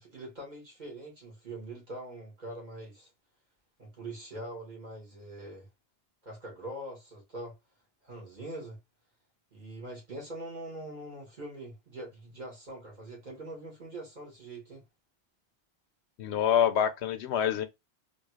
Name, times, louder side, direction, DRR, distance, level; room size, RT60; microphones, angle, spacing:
voice 1, 0.0-3.1 3.8-5.7 6.2-7.6 8.0-8.8 9.5-14.8, right 1 dB, 45° right, 1.9 m, -43 dB
voice 2, 16.2-17.7, left 9 dB, 90° left, 0.9 m, -26 dB
3.7 x 3.0 x 2.3 m
omnidirectional pair, 1.1 m